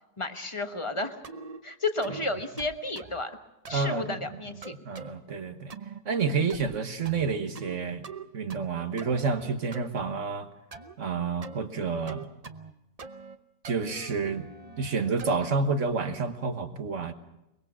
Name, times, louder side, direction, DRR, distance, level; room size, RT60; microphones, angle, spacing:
voice 1, 0.2-1.2 1.6-3.4 3.7-4.7, left 2 dB, 20° left, 7 dB, 1.2 m, -32 dB
sound 1, 1.2-1.6 2.0-2.3 2.6-3.2 3.6-3.9 4.6-5.1 5.7-6.0 6.5-6.8 7.0-7.8 8.0-8.7 9.0-9.9 10.7-10.9 11.4-11.6 12.1-12.7 13.0-13.4 13.6-15.4, right 4 dB, 35° right, 0.7 m, -44 dB
voice 2, 3.7-4.3 4.8-5.7 6.0-8.0 8.3-10.5 11.0-12.3 13.6-14.5 14.8-17.1, right 4 dB, 50° right, 8 dB, 1.5 m, -29 dB
23.5 x 22.0 x 6.1 m, 0.91 s
omnidirectional pair, 1.7 m